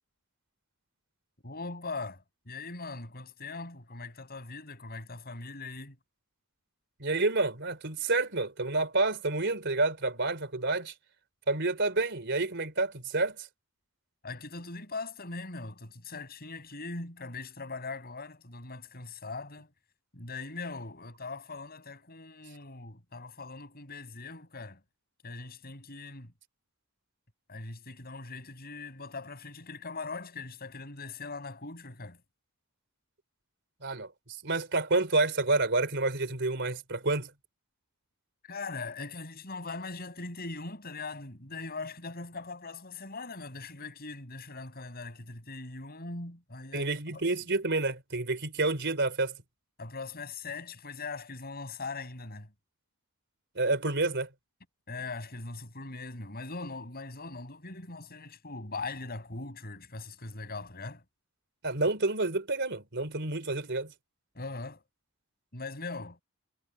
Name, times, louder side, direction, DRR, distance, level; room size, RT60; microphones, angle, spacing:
voice 1, 1.4-6.0 14.2-19.7 20.1-24.8 25.2-26.3 27.5-32.2 38.4-47.3 49.8-52.5 54.9-61.0 64.3-64.8 65.5-66.2, left 3 dB, 45° left, 6.1 m, -41 dB
voice 2, 7.0-10.9 11.5-13.5 33.8-34.1 34.4-37.3 46.7-49.3 53.6-54.3 61.6-63.9, right 2 dB, 55° right, 4.1 m, -29 dB
head